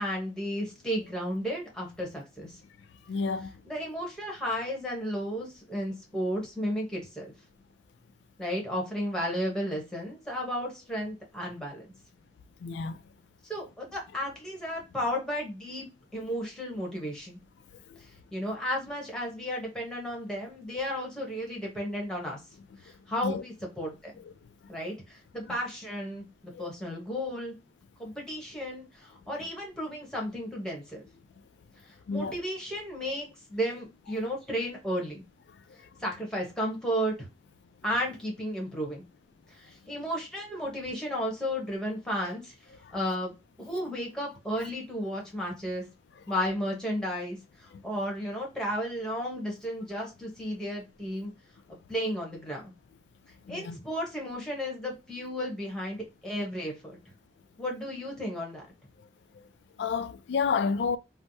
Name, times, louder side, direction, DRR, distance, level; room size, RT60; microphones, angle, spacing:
voice 1, 0.0-2.6 3.7-7.3 8.4-11.9 13.5-15.9 16.1-17.4 18.3-22.4 22.8-24.1 24.7-27.5 28.0-31.0 31.8-35.2 36.0-37.1 37.8-39.0 39.5-42.5 42.9-43.3 43.6-45.8 46.3-51.3 51.9-52.7 53.5-57.0 57.6-58.6, equal, 5° left, 1.0 m, -33 dB
voice 2, 3.1-3.5 12.6-13.0 17.9-18.0 23.2-23.4 26.5-26.7 32.1-32.4 47.7-47.8 53.5-53.8 59.8-61.0, left 5 dB, 80° left, 0.3 m, -30 dB
3.3 x 2.0 x 2.6 m
head